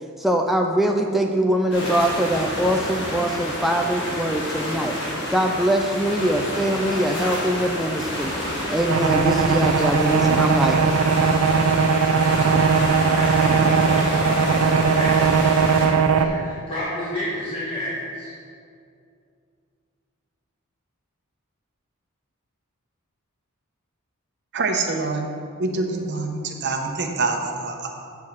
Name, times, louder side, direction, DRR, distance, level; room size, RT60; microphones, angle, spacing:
voice 1, 0.2-5.0 5.3-8.3 8.7-10.9, right 1 dB, ahead, 2 dB, 0.4 m, -22 dB
sound 1, 1.7-15.9, equal, 55° left, 2.2 m, -29 dB
sound 2, 8.9-16.3, right 5 dB, 75° right, 0.5 m, -19 dB
voice 2, 13.1-18.3, left 1 dB, 25° left, -10 dB, 1.6 m, -32 dB
voice 3, 24.5-25.2 25.6-27.9, right 3 dB, 55° right, 3 dB, 0.9 m, -25 dB
7.7 x 4.7 x 7.2 m, 2.4 s
head